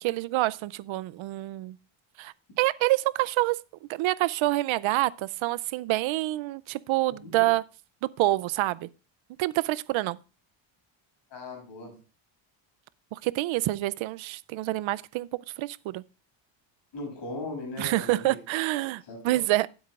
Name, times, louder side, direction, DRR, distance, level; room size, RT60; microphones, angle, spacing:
voice 1, 0.0-1.8 2.2-3.6 3.9-7.6 8.0-8.9 9.4-10.2 13.1-16.0 17.8-19.7, right 18 dB, 70° right, 0.6 m, -27 dB
voice 2, 11.3-12.0 16.9-18.4 18.8-19.4, left 2 dB, 60° left, 7.0 m, -39 dB
19.5 x 8.0 x 2.4 m
cardioid pair, 160°, 50 cm